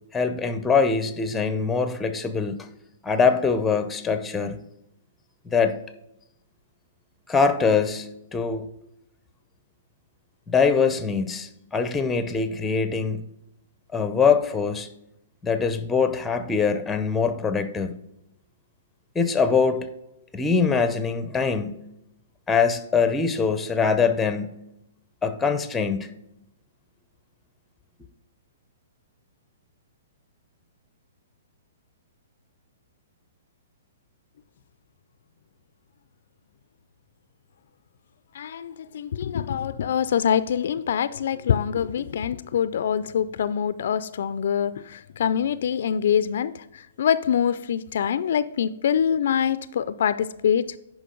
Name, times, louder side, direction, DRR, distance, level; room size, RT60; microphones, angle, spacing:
voice 1, 0.1-2.6 3.0-4.6 5.5-5.8 7.3-8.6 10.5-13.2 13.9-14.9 15.4-17.9 19.1-19.9 20.3-21.9 22.5-24.6 25.2-26.1, left 5 dB, 10° left, 0.7 m, -23 dB
voice 2, 38.4-46.5 47.0-50.8, left 8 dB, 65° left, 0.4 m, -24 dB
10.0 x 5.1 x 3.8 m
hypercardioid pair, 135°, 0 cm